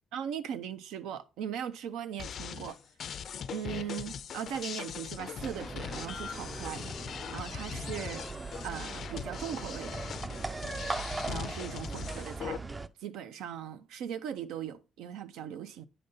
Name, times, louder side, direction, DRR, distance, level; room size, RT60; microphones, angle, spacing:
voice 1, 0.1-2.8 3.5-8.2 8.6-10.0 11.2-12.6 13.0-15.9, right 9 dB, 90° right, 0.5 m, -39 dB
sound 1, 2.2-12.6, left 8 dB, 60° left, 0.4 m, -41 dB
sound 2, 5.4-12.9, right 3 dB, 25° right, 0.4 m, -39 dB
8.7 x 5.1 x 2.6 m
cardioid pair, 90°, 0 cm